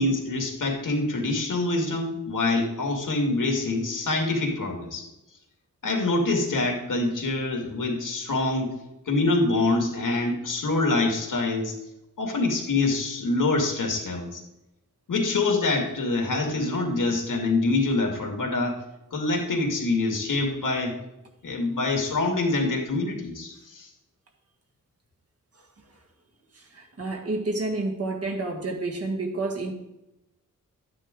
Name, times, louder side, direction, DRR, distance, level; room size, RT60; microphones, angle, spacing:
voice 1, 0.0-5.0 5.8-8.7 9.1-11.7 12.2-14.4 15.1-18.8 19.1-21.0 21.4-23.9, left 2 dB, 75° left, 1 dB, 2.3 m, -25 dB
voice 2, 26.5-29.7, right 2 dB, 45° right, 1 dB, 1.8 m, -29 dB
12.5 x 9.4 x 3.8 m, 0.92 s
wide cardioid pair, 165°, 32 cm